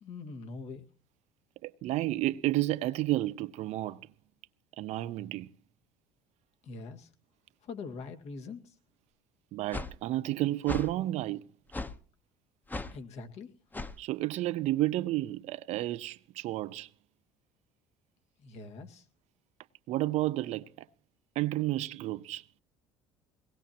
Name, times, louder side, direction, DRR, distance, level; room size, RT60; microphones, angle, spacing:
voice 1, 0.0-0.8 6.6-7.1 7.6-8.7 12.9-13.5 18.4-19.1, left 4 dB, 60° left, 2.1 m, -43 dB
voice 2, 1.6-4.1 4.8-5.5 9.5-11.4 14.0-16.9 19.9-20.9 21.4-22.4, right 16 dB, 65° right, 0.6 m, -31 dB
sound 1, 9.7-9.9 10.7-10.9 11.7-11.9 12.7-12.9 13.7-13.9, left 2 dB, 15° left, 1.0 m, -36 dB
22.5 x 19.0 x 2.9 m
supercardioid pair, 85°, 13 cm